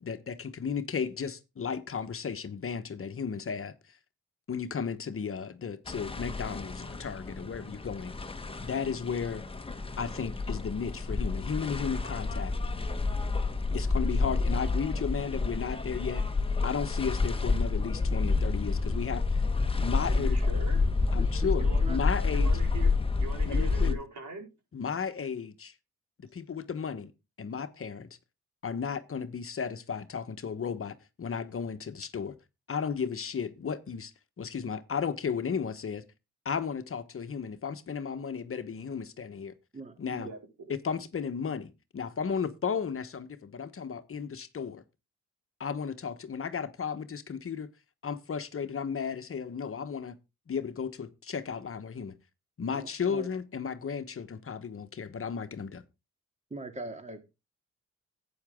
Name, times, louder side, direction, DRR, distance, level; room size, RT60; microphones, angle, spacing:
voice 1, 0.0-4.0 4.5-8.1 8.6-9.4 10.0-12.5 13.7-16.2 16.6-19.4 19.8-20.4 21.1-22.5 23.4-24.0 24.7-25.7 26.2-27.1 27.4-28.1 28.6-32.3 32.7-36.0 36.4-39.5 40.0-40.3 40.7-44.8 45.6-47.7 48.0-50.2 50.5-52.1 52.6-55.8, left 6 dB, 45° left, 1.2 m, -34 dB
sound 1, 5.9-23.9, left 3 dB, 20° left, 1.2 m, -29 dB
voice 2, 20.0-20.8 21.6-21.8 22.3-22.9 23.2-24.4 40.2-40.7, right 3 dB, 70° right, 4.7 m, -42 dB
voice 3, 21.2-21.5 21.8-22.0 39.7-40.3 52.7-53.3 56.5-57.4, right 2 dB, 25° right, 2.3 m, -42 dB
11.5 x 8.9 x 3.7 m
cardioid pair, 65°, 30 cm